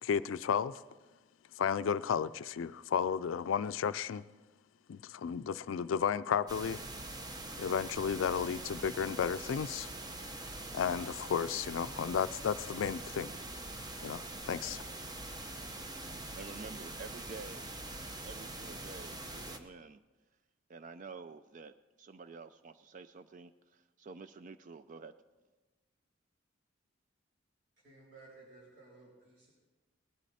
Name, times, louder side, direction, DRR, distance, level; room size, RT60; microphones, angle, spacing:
voice 1, 0.0-0.8 1.6-4.2 4.9-6.8 7.6-9.9 10.7-13.3 14.0-14.8, left 7 dB, 80° left, 14 dB, 0.4 m, -33 dB
sound 1, 6.5-19.6, right 2 dB, 20° right, 0.8 m, -44 dB
voice 2, 16.4-17.7 18.2-20.0 20.7-25.1, right 4 dB, 40° right, 12 dB, 0.4 m, -49 dB
voice 3, 27.8-29.5, right 3 dB, 65° right, -7 dB, 3.6 m, -57 dB
19.5 x 11.5 x 4.2 m, 1.2 s
head